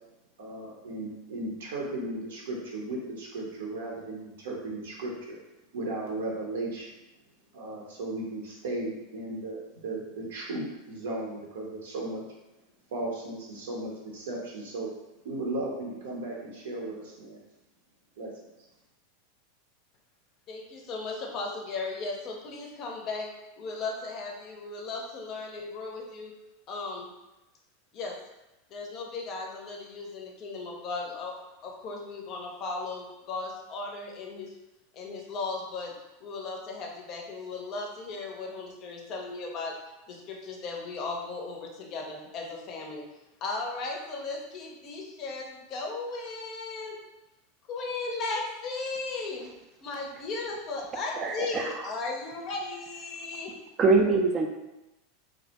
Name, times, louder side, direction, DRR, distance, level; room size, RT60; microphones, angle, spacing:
voice 1, 0.4-5.4 5.7-6.9 7.5-12.2 12.9-14.9 15.2-17.4 18.2-18.3, right 2 dB, 75° right, -2 dB, 0.7 m, -35 dB
voice 2, 20.5-26.3 26.7-27.1 27.9-28.2 28.7-31.4 31.6-34.5 34.9-35.9 36.2-39.7 40.1-43.0 43.4-47.0 47.7-49.5 49.8-53.5, left 3 dB, 45° left, 0 dB, 0.5 m, -36 dB
voice 3, 51.2-51.8 53.8-54.5, right 3 dB, 35° right, 3 dB, 0.3 m, -23 dB
2.2 x 2.1 x 2.8 m, 0.97 s
hypercardioid pair, 95°, 0 cm